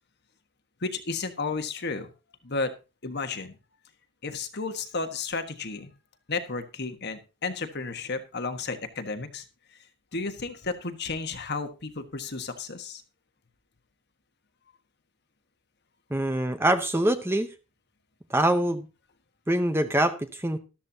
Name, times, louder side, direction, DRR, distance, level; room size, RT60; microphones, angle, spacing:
voice 1, 0.8-2.1 2.4-2.7 3.0-3.5 4.2-5.9 6.3-9.4 10.1-13.0, left 4 dB, 50° left, 8 dB, 1.4 m, -32 dB
voice 2, 16.1-17.5 18.3-18.9 19.5-20.6, right 1 dB, 10° right, 8 dB, 0.8 m, -24 dB
13.0 x 13.0 x 2.8 m, 0.30 s
head